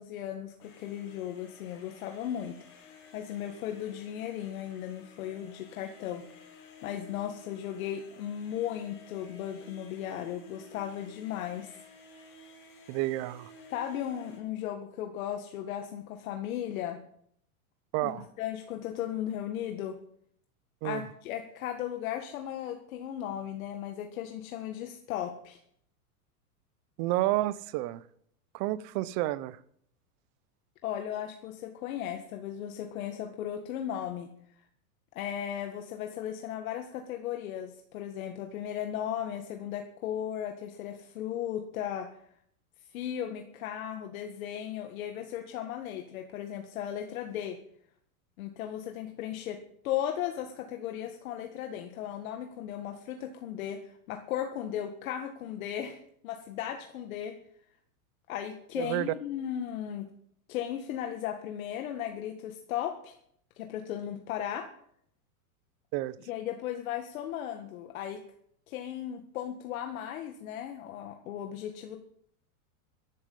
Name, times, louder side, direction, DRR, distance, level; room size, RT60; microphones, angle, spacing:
voice 1, 0.0-11.8 13.7-17.0 18.0-20.0 20.8-25.6 30.8-34.3 35.2-42.1 42.9-47.6 48.4-57.4 58.3-60.1 60.5-63.1 63.6-64.7 66.2-68.2 68.7-72.0, left 10 dB, 65° left, 5 dB, 1.8 m, -36 dB
sound 1, 0.6-14.4, left 3 dB, 30° left, 4.9 m, -54 dB
voice 2, 12.9-13.5 17.9-18.2 20.8-21.0 27.0-28.0 28.5-29.6 58.8-59.1 65.9-66.1, right 17 dB, 40° right, 17 dB, 0.8 m, -30 dB
15.0 x 12.5 x 5.5 m, 0.67 s
supercardioid pair, 140°, 44 cm